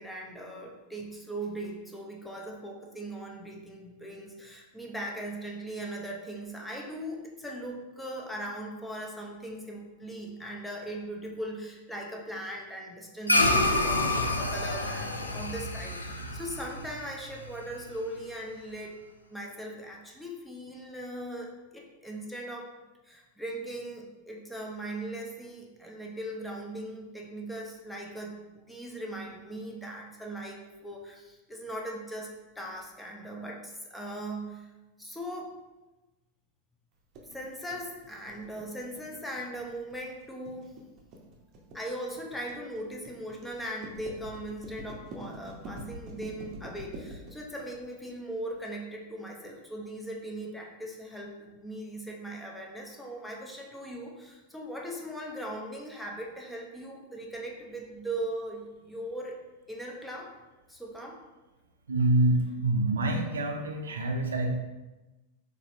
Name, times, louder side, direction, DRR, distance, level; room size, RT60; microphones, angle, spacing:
voice 1, 0.0-19.0 19.3-22.7 23.0-34.7 35.0-35.6 37.3-40.7 41.7-59.4 59.7-60.3 60.7-61.2, right 1 dB, 5° left, -1 dB, 0.6 m, -39 dB
sound 1, 13.3-17.9, left 2 dB, 80° left, 0.3 m, -28 dB
sound 2, 37.1-48.7, right 1 dB, 35° right, 0.7 m, -45 dB
voice 2, 61.9-64.5, right 1 dB, 70° right, 3 dB, 0.4 m, -26 dB
3.9 x 3.1 x 2.5 m, 1.1 s
figure-of-eight pair, 90°, 0 cm